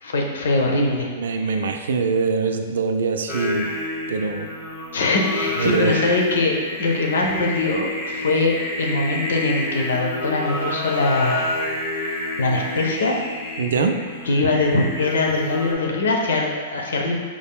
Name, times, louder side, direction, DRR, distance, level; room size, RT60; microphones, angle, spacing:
voice 1, 0.0-1.7 4.9-11.5 12.0-13.2 14.2-17.1, left 2 dB, 75° left, 1 dB, 0.7 m, -22 dB
voice 2, 1.2-3.7 4.1-4.5 5.6-5.9 13.6-14.0, right 4 dB, 75° right, 6 dB, 0.3 m, -23 dB
Singing, 3.3-15.7, left 1 dB, 45° left, 0.9 m, -29 dB
4.9 x 3.5 x 2.3 m, 1.5 s
hypercardioid pair, 110°, 0 cm